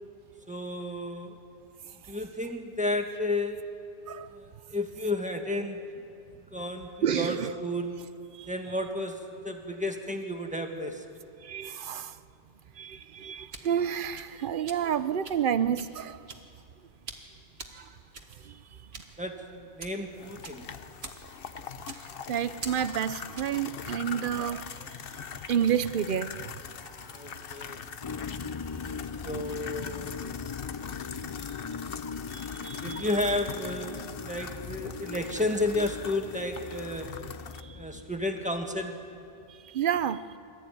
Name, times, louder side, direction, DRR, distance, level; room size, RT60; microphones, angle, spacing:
voice 1, 0.5-1.4 2.1-3.6 4.3-5.8 6.5-8.0 8.5-9.2 9.4-11.0 19.2-20.7 27.1-27.9 29.2-30.2 31.6-32.0 32.8-37.1 37.8-39.0, left 1 dB, 5° right, 3 dB, 1.7 m, -32 dB
voice 2, 7.0-7.5 8.4-8.5 11.4-12.2 12.8-16.2 17.7-17.9 18.4-18.6 21.9-25.0 25.5-26.5 26.8-27.1 32.3-33.1 37.6-37.8 39.6-40.3, right 9 dB, 55° right, 14 dB, 0.8 m, -30 dB
sound 1, 13.2-23.7, right 3 dB, 75° right, 1.9 m, -47 dB
sound 2, 20.1-37.6, left 7 dB, 65° left, 1.0 m, -42 dB
sound 3, 28.0-38.9, left 5 dB, 35° left, 0.5 m, -40 dB
24.0 x 14.0 x 9.3 m, 2.5 s
omnidirectional pair, 1.1 m